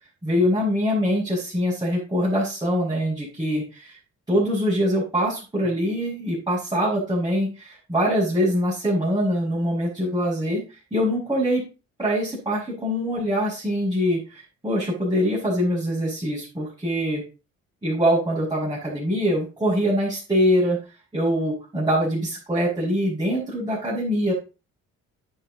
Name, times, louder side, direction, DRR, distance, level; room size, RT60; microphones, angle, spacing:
voice 1, 0.2-4.0 4.3-11.6 12.0-17.2 17.8-20.8 21.1-24.3, equal, 15° right, -8 dB, 6.1 m, -23 dB
10.5 x 7.4 x 4.0 m, 0.31 s
cardioid pair, 90°, 30 cm